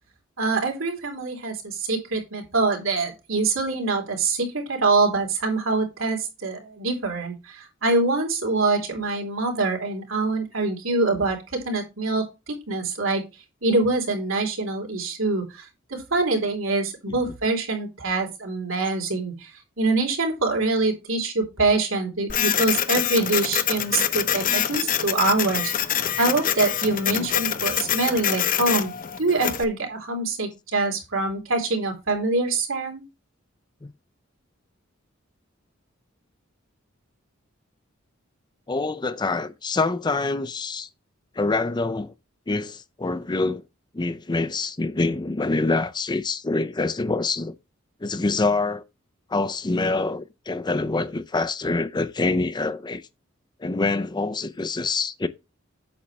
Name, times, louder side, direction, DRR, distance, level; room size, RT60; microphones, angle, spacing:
voice 1, 0.4-13.2 13.6-15.6 15.9-19.5 19.8-25.7 26.2-28.9 29.2-33.0, right 3 dB, 75° right, 3.3 m, -24 dB
Printer, 22.3-29.6, left 9 dB, 45° left, 0.8 m, -25 dB
voice 2, 38.7-40.9 41.4-42.1 42.5-43.6 43.9-47.6 48.0-48.8 49.3-53.0 53.6-55.3, left 3 dB, 20° left, 0.5 m, -25 dB
8.6 x 7.2 x 3.2 m
head